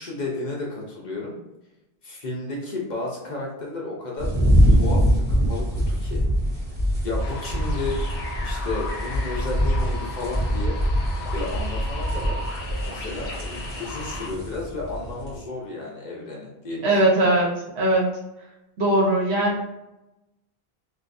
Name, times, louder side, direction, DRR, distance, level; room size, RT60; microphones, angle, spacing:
voice 1, 0.0-1.3 2.0-4.3 4.7-6.2 7.0-8.0 8.4-10.8 11.3-12.4 12.9-13.3 13.8-17.3, left 3 dB, 50° left, -3 dB, 0.7 m, -32 dB
sound 1, 4.2-15.4, equal, 30° right, 1.0 m, -24 dB
sound 2, 7.2-14.3, left 2 dB, 80° left, 0.8 m, -36 dB
voice 2, 16.8-17.5 17.7-18.1 18.8-19.6, right 1 dB, 85° right, -4 dB, 1.1 m, -19 dB
2.5 x 2.3 x 2.5 m, 0.94 s
omnidirectional pair, 1.1 m